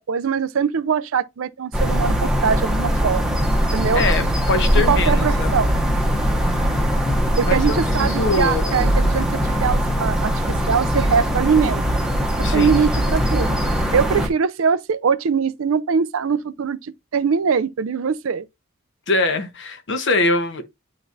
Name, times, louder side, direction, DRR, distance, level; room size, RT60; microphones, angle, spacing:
voice 1, 0.1-3.4 3.7-4.0 4.9-5.8 7.4-11.8 12.5-13.6 13.9-18.5, right 6 dB, 65° right, 0.4 m, -22 dB
sound 1, 1.7-14.3, equal, 5° right, 1.0 m, -20 dB
voice 2, 3.9-5.6 7.4-8.9 12.4-12.7 19.1-20.6, left 2 dB, 55° left, 1.0 m, -23 dB
9.4 x 3.9 x 2.6 m
head